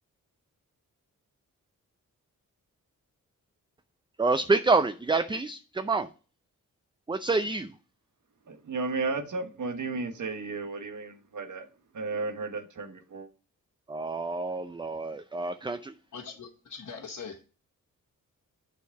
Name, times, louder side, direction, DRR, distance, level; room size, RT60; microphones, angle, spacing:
voice 1, 4.2-6.1 7.1-7.7 13.9-16.0, right 3 dB, 15° right, 0.5 m, -27 dB
voice 2, 8.5-11.7 11.9-13.3, right 3 dB, 60° right, 1.2 m, -34 dB
voice 3, 16.1-17.4, left 5 dB, 55° left, 1.2 m, -41 dB
6.7 x 4.7 x 4.6 m
cardioid pair, 50°, 34 cm